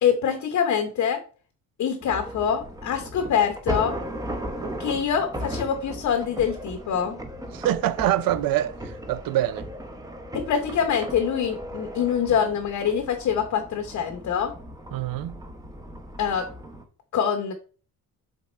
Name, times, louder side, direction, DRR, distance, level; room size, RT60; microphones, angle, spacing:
voice 1, 0.0-1.2 1.8-4.0 4.8-7.2 10.3-14.5 16.2-16.5 17.1-17.5, left 7 dB, 50° left, 0.8 m, -25 dB
sound 1, 2.0-16.8, equal, 10° right, 0.8 m, -36 dB
voice 2, 7.5-9.7 14.9-15.4, right 13 dB, 70° right, 0.5 m, -25 dB
7.3 x 3.6 x 4.2 m
cardioid pair, 170°, 36 cm